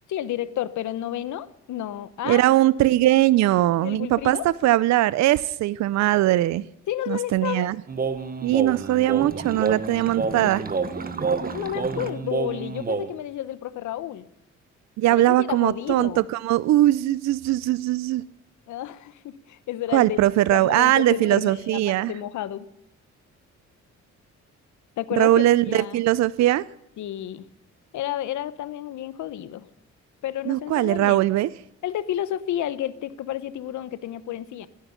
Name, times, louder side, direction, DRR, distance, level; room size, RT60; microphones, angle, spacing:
voice 1, 0.1-2.4 3.7-4.5 6.9-7.7 11.5-14.2 15.1-16.3 18.7-20.2 20.5-22.7 25.0-26.0 27.0-27.4 27.9-29.7 30.2-31.2 31.8-34.7, left 12 dB, 75° left, 15 dB, 0.9 m, -31 dB
voice 2, 2.2-6.7 7.1-7.8 8.4-10.6 15.0-18.2 19.9-22.1 25.1-26.6 30.5-31.5, right 15 dB, 65° right, 19 dB, 0.5 m, -20 dB
sound 1, 7.9-13.1, right 4 dB, 30° right, 1.2 m, -28 dB
17.0 x 10.5 x 6.9 m, 0.81 s
cardioid pair, 90°, 30 cm